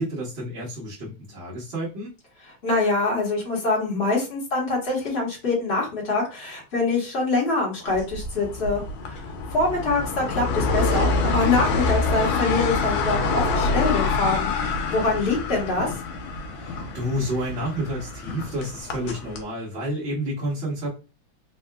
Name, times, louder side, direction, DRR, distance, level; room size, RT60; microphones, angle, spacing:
voice 1, 0.0-2.1 16.6-20.9, equal, 40° right, -8 dB, 1.1 m, -30 dB
voice 2, 2.6-9.2 9.5-14.5 14.9-15.9, left 3 dB, 35° left, -3 dB, 1.5 m, -24 dB
sound 1, 7.9-19.4, left 3 dB, 85° left, 1.5 m, -26 dB
3.6 x 2.7 x 2.3 m, 0.31 s
omnidirectional pair, 2.1 m